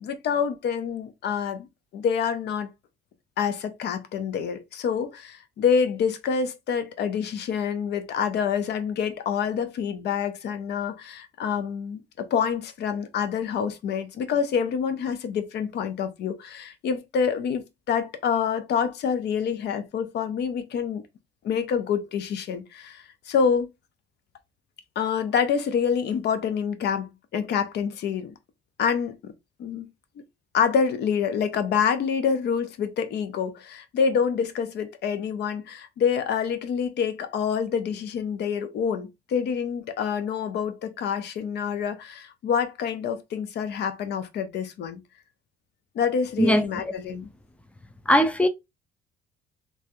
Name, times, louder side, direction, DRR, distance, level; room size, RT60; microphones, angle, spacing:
voice 1, 0.0-1.7 1.9-2.7 3.4-21.0 21.4-23.7 25.0-28.3 28.8-29.3 29.6-29.9 30.5-45.0 45.9-47.3, left 7 dB, 60° left, 0.6 m, -27 dB
voice 2, 46.4-46.9 48.1-48.5, equal, 5° left, 0.4 m, -20 dB
3.2 x 2.3 x 2.5 m
cardioid pair, 115°, 19 cm